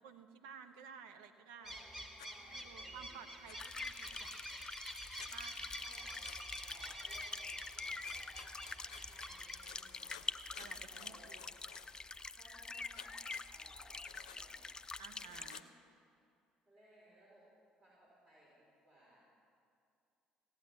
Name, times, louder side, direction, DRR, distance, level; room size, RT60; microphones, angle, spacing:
voice 1, 0.0-1.8 2.3-4.6 5.1-5.6 10.6-11.5 15.0-15.6, right 7 dB, 70° right, 8 dB, 0.8 m, -55 dB
voice 2, 1.5-3.2 5.8-6.3 6.6-10.2 10.9-11.4 12.3-13.2 13.5-15.6 16.7-17.5 17.8-19.2, right 1 dB, 35° right, -7 dB, 4.3 m, -63 dB
sound 1, 1.6-9.6, equal, 10° right, 2.2 m, -49 dB
Writing, 2.2-2.3 3.5-4.4 5.2-5.3 6.2-6.4 8.0-9.3 9.6-12.1 12.9-13.5 14.0-14.4 15.1-15.7, left 8 dB, 80° left, 0.6 m, -56 dB
sound 2, 3.6-15.6, left 3 dB, 20° left, 0.5 m, -46 dB
16.5 x 8.9 x 7.7 m, 2.5 s
figure-of-eight pair, 50°, 3 cm